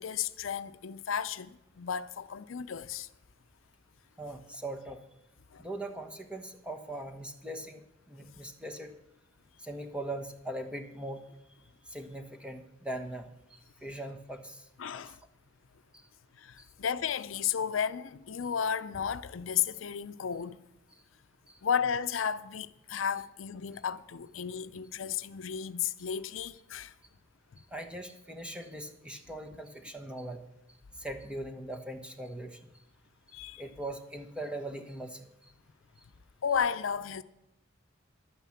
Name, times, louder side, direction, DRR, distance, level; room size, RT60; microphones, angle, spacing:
voice 1, 0.0-3.1 5.5-5.7 14.8-15.2 16.4-20.6 21.6-26.9 27.5-27.6 33.3-33.6 36.4-37.2, left 7 dB, 90° left, 0.5 m, -33 dB
voice 2, 4.2-5.0 5.6-7.8 8.1-8.9 9.6-11.2 11.9-14.6 14.9-15.0 15.9-16.0 16.6-16.7 21.5-21.6 27.7-30.4 30.9-32.7 33.6-35.3, right 1 dB, 5° right, 1.2 m, -40 dB
11.5 x 9.2 x 7.1 m
head